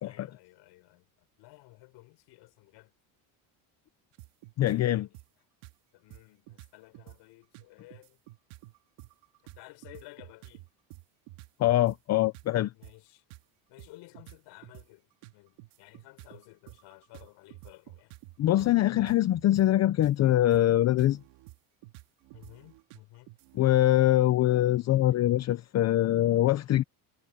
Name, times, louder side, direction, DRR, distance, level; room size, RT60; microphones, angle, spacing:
voice 1, 0.0-2.9 4.6-5.1 5.9-8.2 9.4-10.7 12.7-13.2 13.7-15.1 15.3-18.1 22.3-23.3 23.6-23.8, left 20 dB, 75° left, 5.5 m, -54 dB
sound 1, 4.1-5.3 5.6-5.7 6.1-6.2 6.5-7.2 7.5-12.9 13.3-13.4 13.8-14.9 15.2-20.6 20.9-23.7, right 18 dB, 80° right, 2.4 m, -50 dB
voice 2, 4.6-5.1 11.6-12.7 18.4-21.2 23.5-26.8, left 14 dB, 40° left, 0.6 m, -23 dB
cardioid pair, 150°, 42 cm